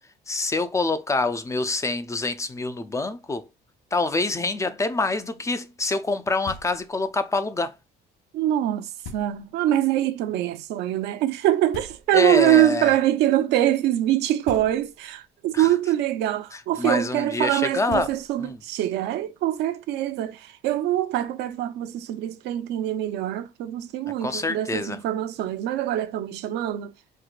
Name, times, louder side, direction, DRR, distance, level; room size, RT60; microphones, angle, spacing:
voice 1, 0.3-3.5 3.9-7.8 12.1-13.0 15.5-15.7 16.5-18.1 18.4-18.6 24.2-25.0, left 3 dB, 20° left, 0.4 m, -26 dB
Knock, 6.4-7.1 9.0-9.7 11.7-12.5 14.4-15.2 17.5-17.6 17.9-18.7, left 3 dB, 85° left, 0.8 m, -42 dB
voice 2, 8.3-26.9, right 13 dB, 85° right, 0.5 m, -24 dB
4.3 x 2.2 x 2.4 m
cardioid pair, 110°, 17 cm